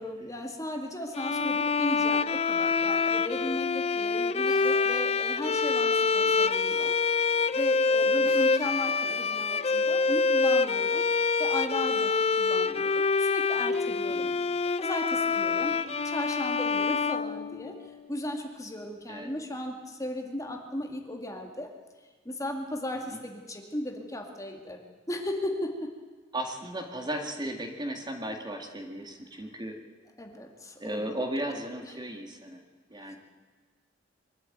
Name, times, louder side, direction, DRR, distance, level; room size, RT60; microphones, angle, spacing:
voice 1, 0.0-7.0 7.5-11.1 11.4-14.3 14.8-15.8 16.0-17.8 18.1-21.7 22.3-24.8 25.1-25.9 30.2-31.1 31.8-31.9 33.0-33.1, left 1 dB, 20° left, 3 dB, 2.0 m, -36 dB
sound 1, 1.1-18.0, left 4 dB, 35° left, 0.5 m, -26 dB
sound 2, 3.7-4.1 4.5-7.5 8.2-10.1, equal, 5° left, 4.8 m, -50 dB
voice 2, 6.2-6.5 8.0-8.3 14.1-14.6 15.7-16.0 19.1-19.3 23.1-23.2 26.3-29.8 30.8-32.6 32.9-33.2, right 1 dB, 25° right, 4 dB, 2.1 m, -36 dB
23.5 x 12.5 x 9.1 m, 1.4 s
head